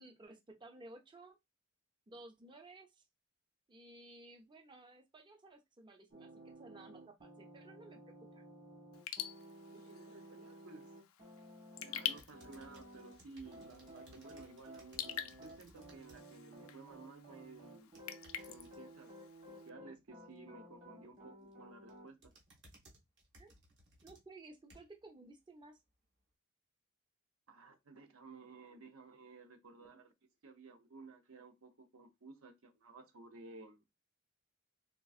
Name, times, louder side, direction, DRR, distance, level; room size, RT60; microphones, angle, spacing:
voice 1, 0.0-1.4 2.1-3.0 3.7-8.4 23.4-23.5 24.0-25.8, right 2 dB, 25° right, 0.5 m, -56 dB
sound 1, 6.1-13.2 13.4-22.1, right 1 dB, 40° right, 1.3 m, -55 dB
Raindrop / Drip, 8.9-19.7, left 10 dB, 90° left, 0.4 m, -47 dB
voice 2, 9.7-10.8 11.8-17.9 18.5-19.1 19.5-22.3 27.5-30.1 30.4-33.8, right 3 dB, 75° right, 0.7 m, -55 dB
sound 2, 12.1-16.2 16.6-17.0 17.8-18.8 21.2-21.5 21.9-25.1 25.6-25.7, right 1 dB, 60° right, 1.2 m, -62 dB
3.7 x 2.4 x 2.4 m
head